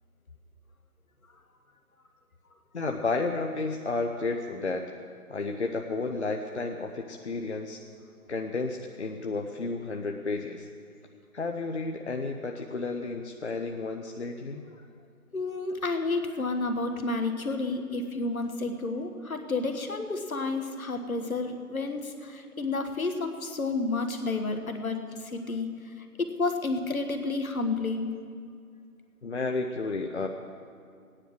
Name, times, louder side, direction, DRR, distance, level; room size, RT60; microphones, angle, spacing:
voice 1, 2.7-4.8 5.3-7.8 8.3-10.7 11.3-14.6 29.2-30.3, left 3 dB, 50° left, 3 dB, 0.8 m, -32 dB
voice 2, 15.3-28.1, left 3 dB, 65° left, 5 dB, 1.5 m, -31 dB
15.0 x 9.9 x 6.3 m, 2.2 s
figure-of-eight pair, 155°, 44 cm